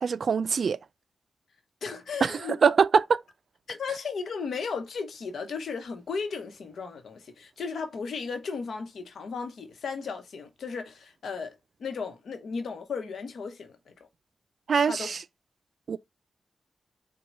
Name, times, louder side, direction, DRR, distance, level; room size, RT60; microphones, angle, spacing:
voice 1, 0.0-0.8 2.2-2.3 2.6-3.2 14.7-15.2 15.9-16.0, right 6 dB, 70° right, 0.3 m, -23 dB
voice 2, 1.8-2.6 3.7-13.9 14.8-15.1, left 5 dB, 80° left, 0.9 m, -35 dB
4.7 x 2.2 x 3.9 m
cardioid pair, 65°, 0 cm